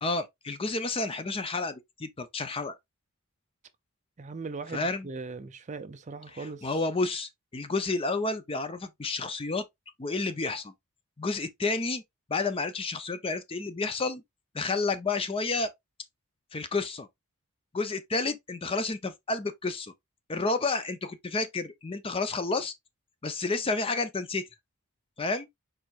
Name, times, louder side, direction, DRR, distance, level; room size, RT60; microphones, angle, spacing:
voice 1, 0.0-2.8 4.7-5.1 6.3-9.6 10.0-10.7 11.2-12.0 12.3-14.2 14.5-15.7 16.5-17.1 17.7-19.9 20.3-22.7 23.2-24.4 25.2-25.5, left 3 dB, 25° left, 0.6 m, -30 dB
voice 2, 4.2-6.7, right 4 dB, 35° right, 0.5 m, -39 dB
4.5 x 4.4 x 2.4 m
head